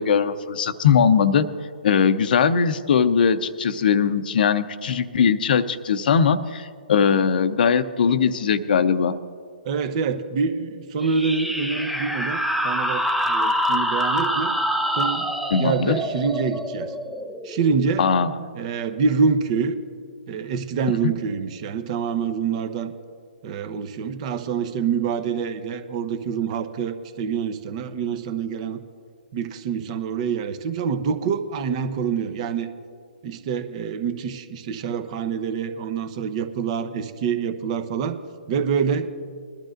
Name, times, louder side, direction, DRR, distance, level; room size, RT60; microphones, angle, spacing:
voice 1, 0.0-1.5 1.8-9.1 15.5-16.0 18.0-18.3, left 6 dB, 55° left, 12 dB, 0.7 m, -20 dB
voice 2, 9.6-14.6 14.9-15.3 15.6-16.9 17.4-18.1 18.5-19.8 20.3-22.9 23.4-28.8 29.3-32.7 33.2-38.2 38.5-39.1, right 6 dB, 40° right, 9 dB, 0.9 m, -26 dB
sound 1, 11.0-18.2, equal, ahead, 0.5 m, -26 dB
21.5 x 12.0 x 2.6 m, 2.2 s
hypercardioid pair, 140°, 6 cm